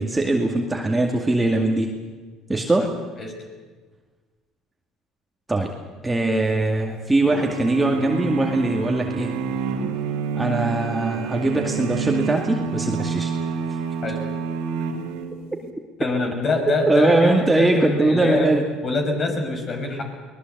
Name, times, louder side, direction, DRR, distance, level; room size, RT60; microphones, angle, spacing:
voice 1, 0.0-2.0 2.5-3.0 5.5-5.7 6.0-9.3 10.3-13.3 16.9-18.6, right 2 dB, 15° right, 1 dB, 2.3 m, -21 dB
sound 1, 7.3-15.6, right 6 dB, 85° right, 2.6 m, -28 dB
voice 2, 16.0-18.5 18.8-20.0, left 2 dB, 45° left, 4 dB, 5.8 m, -24 dB
23.5 x 19.5 x 8.1 m, 1.4 s
supercardioid pair, 85°, 0 cm